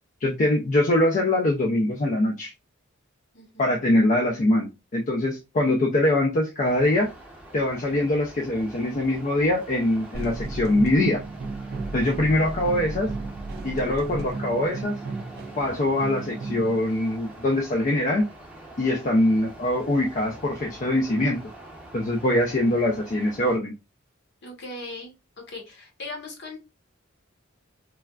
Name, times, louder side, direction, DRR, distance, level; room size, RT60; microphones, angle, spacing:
voice 1, 0.2-2.5 3.6-7.1 7.5-11.2 11.9-13.1 13.6-15.0 15.6-18.3 18.8-21.4 21.9-23.7, left 1 dB, 40° left, 0 dB, 0.4 m, -23 dB
voice 2, 3.3-3.7 24.4-25.1 25.5-26.6, left 2 dB, 60° left, 2 dB, 1.0 m, -38 dB
sound 1, 6.6-23.6, right 2 dB, 5° right, 0.7 m, -45 dB
sound 2, 10.1-16.8, right 3 dB, 50° right, 0.3 m, -34 dB
3.2 x 2.3 x 2.3 m, 0.25 s
head